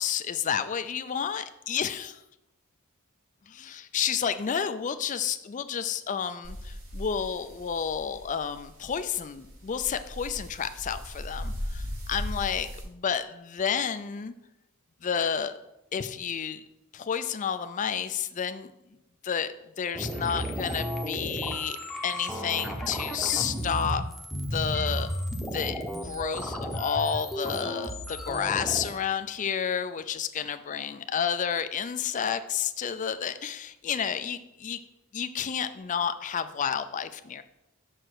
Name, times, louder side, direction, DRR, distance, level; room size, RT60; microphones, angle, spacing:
voice 1, 0.0-2.2 3.6-14.3 15.0-15.6 15.9-16.6 16.9-18.7 19.2-21.8 22.0-24.0 24.5-25.1 25.5-25.8 26.0-34.8 35.1-37.4, left 7 dB, 35° left, 11 dB, 0.4 m, -30 dB
sound 1, 6.4-12.8, equal, 85° right, 2.4 m, -38 dB
sound 2, 19.9-28.9, equal, ahead, 0.8 m, -33 dB
6.6 x 4.8 x 6.1 m, 0.90 s
head